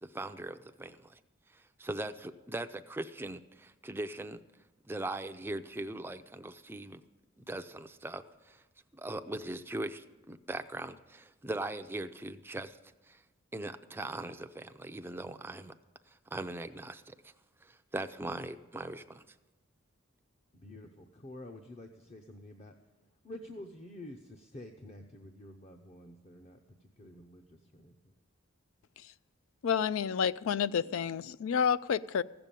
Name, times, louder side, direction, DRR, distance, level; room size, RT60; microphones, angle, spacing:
voice 1, 0.0-1.2 1.5-4.4 4.9-7.0 7.5-8.6 8.9-12.8 13.0-13.2 13.5-15.7 16.1-17.3 17.6-19.2, right 2 dB, 10° right, 9 dB, 0.4 m, -40 dB
voice 2, 20.5-22.7 23.2-28.1, left 1 dB, 30° left, 4 dB, 0.7 m, -49 dB
voice 3, 29.6-32.2, left 7 dB, 70° left, 16 dB, 0.3 m, -29 dB
15.0 x 6.9 x 9.0 m, 1.1 s
head